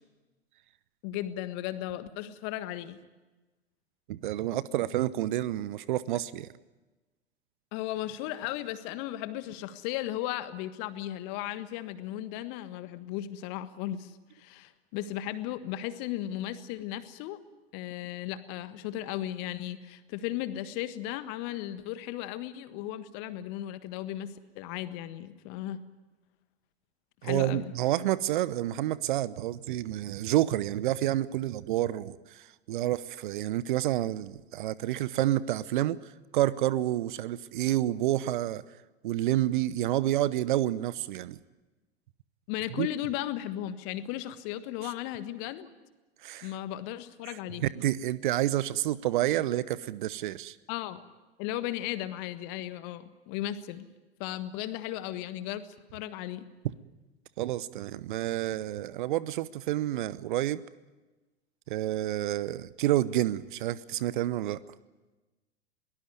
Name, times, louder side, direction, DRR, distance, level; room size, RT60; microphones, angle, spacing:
voice 1, 1.0-3.0 7.7-17.4 17.7-25.8 27.2-27.7 42.5-45.7 46.4-47.6 50.7-51.0 51.4-53.9 54.2-56.5, left 13 dB, 40° left, 12 dB, 1.6 m, -36 dB
voice 2, 4.1-6.5 27.2-36.0 36.3-38.6 39.0-41.4 42.8-42.9 44.8-44.9 46.2-46.5 47.3-50.6 57.4-60.6 61.7-64.6, right 14 dB, 50° right, 18 dB, 0.9 m, -29 dB
22.0 x 19.0 x 9.5 m, 1.2 s
figure-of-eight pair, 95°, 32 cm